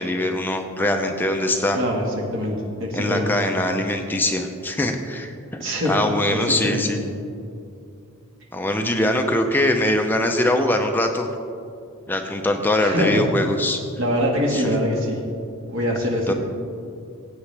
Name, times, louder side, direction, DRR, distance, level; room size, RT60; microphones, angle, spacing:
voice 1, 0.0-1.8 2.9-7.0 8.5-11.3 12.1-13.8 14.5-14.7 16.3-16.4, left 1 dB, 10° left, 4 dB, 0.5 m, -22 dB
voice 2, 1.7-2.1 2.3-3.3 5.6-5.9 6.3-6.9 12.8-13.3 14.0-15.2 15.7-16.3, equal, 60° right, 0 dB, 1.7 m, -23 dB
15.5 x 8.2 x 3.4 m, 2.5 s
head